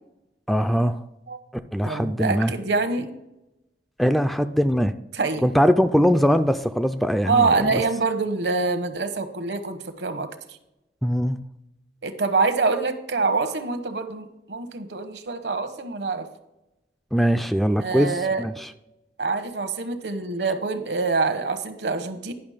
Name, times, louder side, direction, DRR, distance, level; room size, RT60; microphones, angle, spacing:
voice 1, 0.5-1.0 1.7-2.5 4.0-4.9 5.4-7.8 11.0-11.4 17.1-18.7, equal, ahead, 9 dB, 0.3 m, -21 dB
voice 2, 1.8-3.1 5.1-5.4 7.3-10.3 12.0-16.3 17.8-18.4 19.2-22.3, right 4 dB, 70° right, 10 dB, 1.0 m, -25 dB
10.5 x 5.9 x 4.9 m, 0.90 s
head